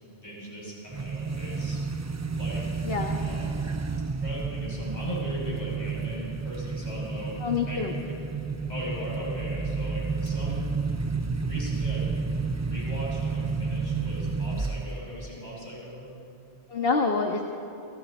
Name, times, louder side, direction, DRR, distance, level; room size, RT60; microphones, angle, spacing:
voice 1, 0.0-1.8 2.3-2.9 3.2-3.6 4.2-8.2 8.7-10.7 11.4-16.1, equal, 40° left, -5 dB, 7.0 m, -39 dB
sound 1, 0.9-15.2, right 4 dB, 25° right, 0.4 m, -31 dB
voice 2, 2.8-3.2 7.4-7.9 16.7-17.4, left 4 dB, 60° left, 2 dB, 1.6 m, -26 dB
29.5 x 28.0 x 4.4 m, 2.8 s
omnidirectional pair, 1.1 m